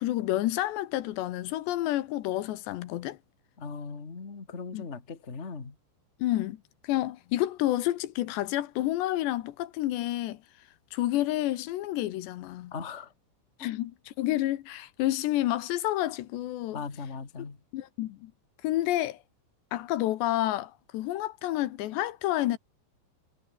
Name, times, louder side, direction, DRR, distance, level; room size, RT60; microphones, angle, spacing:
voice 1, 0.0-3.2 4.7-4.9 6.2-6.6 6.8-10.4 10.9-12.7 13.6-16.8 17.7-18.3 18.6-19.2 19.7-22.6, left 15 dB, 75° left, 3.1 m, -29 dB
voice 2, 3.6-5.7 12.7-13.1 16.7-17.6, left 5 dB, 40° left, 0.9 m, -39 dB
omnidirectional pair, 5.3 m